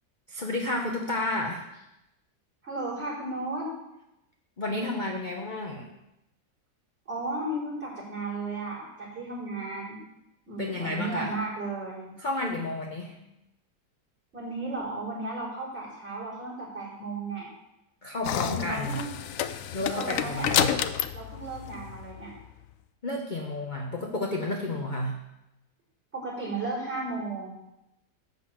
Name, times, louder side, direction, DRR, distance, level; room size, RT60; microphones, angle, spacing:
voice 1, 0.3-1.7 4.6-5.9 10.6-11.3 12.2-13.3 18.0-19.0 19.7-20.7 23.0-25.2, left 2 dB, 35° left, 1 dB, 0.8 m, -31 dB
voice 2, 2.6-3.7 7.1-10.0 10.5-12.1 14.3-17.5 18.4-19.1 19.9-20.7 21.1-22.3 26.1-27.5, right 2 dB, 40° right, -6 dB, 4.5 m, -34 dB
sound 1, 18.2-22.5, left 10 dB, 70° left, 0.8 m, -30 dB
12.0 x 4.1 x 7.5 m, 0.89 s
omnidirectional pair, 1.8 m